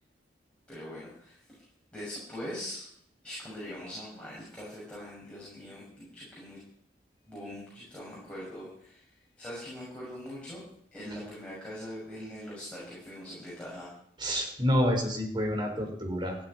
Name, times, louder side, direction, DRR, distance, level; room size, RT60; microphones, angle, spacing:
voice 1, 0.7-1.4 1.9-2.9 3.2-6.6 7.3-9.1 9.4-10.6 10.9-13.9, equal, 5° left, -7 dB, 6.8 m, -42 dB
voice 2, 14.2-16.4, equal, 25° right, 2 dB, 4.4 m, -28 dB
15.5 x 8.6 x 9.9 m, 0.66 s
head